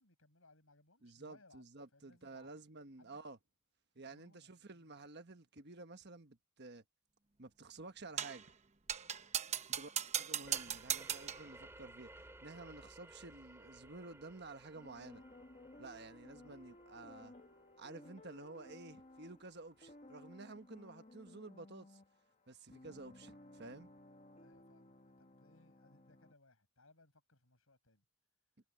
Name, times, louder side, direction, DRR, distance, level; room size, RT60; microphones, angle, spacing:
voice 1, 0.0-1.6 1.9-2.5 3.0-3.2 3.9-4.9 9.5-9.8 16.4-16.6 24.4-28.0, left 2 dB, 70° left, 6.6 m, -67 dB
voice 2, 1.0-3.4 3.9-6.8 7.4-8.5 9.8-9.9 10.2-15.2 15.8-17.3 17.8-22.0 22.5-23.9, right 3 dB, 50° right, 1.3 m, -52 dB
sound 1, 8.2-8.5 8.9-11.5, right 9 dB, 30° right, 1.0 m, -38 dB
sound 2, 10.4-19.8, right 1 dB, 10° right, 2.4 m, -59 dB
sound 3, 14.7-26.3, left 1 dB, 35° left, 1.3 m, -58 dB
head